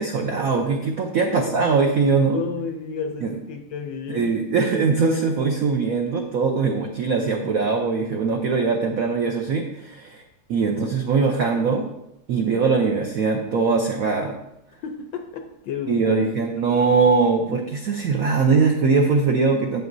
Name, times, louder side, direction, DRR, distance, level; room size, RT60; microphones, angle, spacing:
voice 1, 0.0-2.4 3.2-3.3 4.1-10.2 10.5-11.9 12.3-14.4 15.9-19.8, right 4 dB, 85° right, 2 dB, 0.7 m, -21 dB
voice 2, 2.3-4.4 14.8-16.3 16.6-16.8, left 6 dB, 70° left, 5 dB, 1.1 m, -32 dB
9.2 x 7.9 x 2.6 m, 0.85 s
omnidirectional pair, 2.4 m